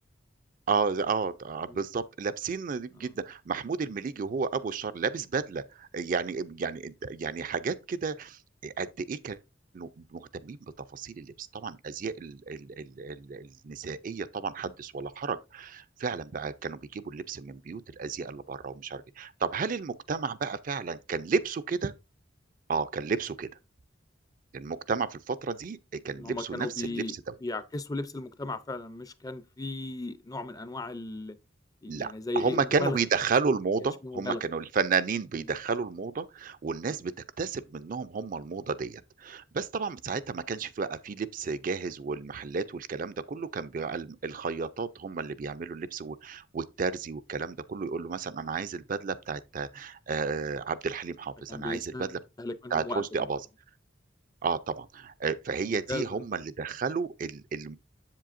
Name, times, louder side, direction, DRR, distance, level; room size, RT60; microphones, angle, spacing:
voice 1, 0.7-9.4 9.7-10.6 10.9-21.9 22.7-23.5 24.5-25.8 26.0-27.3 31.9-52.2 52.7-53.4 54.4-57.8, right 5 dB, 45° right, 0.4 m, -32 dB
voice 2, 26.2-27.1 27.4-31.4 31.8-33.0 34.0-34.4 51.5-52.1 52.4-53.0 55.6-56.2, left 2 dB, 20° left, 0.4 m, -35 dB
7.6 x 7.5 x 2.5 m
head